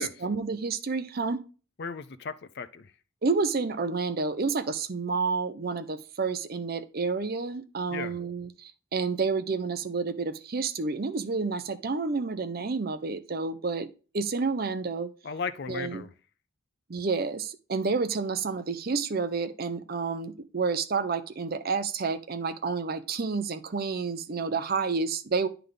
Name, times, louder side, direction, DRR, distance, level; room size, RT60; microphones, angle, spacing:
voice 1, 0.0-1.4 3.2-15.1 15.7-16.0 16.9-25.5, right 4 dB, 45° right, 0.6 m, -30 dB
voice 2, 1.8-2.9 7.9-8.1 15.2-16.1, left 5 dB, 50° left, 0.5 m, -35 dB
9.4 x 3.4 x 3.8 m
head